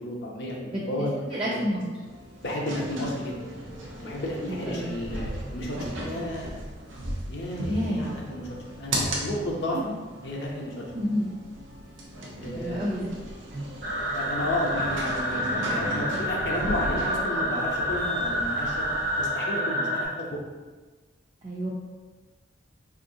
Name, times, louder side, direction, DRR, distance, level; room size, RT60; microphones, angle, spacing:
voice 1, 0.0-1.9 2.4-3.4 4.0-6.6 7.3-8.5 8.8-9.8 10.2-10.8 12.4-12.9 14.1-18.8 19.2-20.4, left 1 dB, 60° left, -2 dB, 0.6 m, -32 dB
voice 2, 1.3-1.8 4.5-4.9 7.7-8.0 9.7-9.8 10.9-11.3 12.5-13.1 13.5-13.7 21.4-21.7, equal, 25° right, -6 dB, 0.4 m, -29 dB
sound 1, 2.0-19.3, right 1 dB, 85° right, 0.6 m, -37 dB
sound 2, 13.8-20.1, equal, 45° right, 0.8 m, -28 dB
3.6 x 2.5 x 2.6 m, 1.3 s
head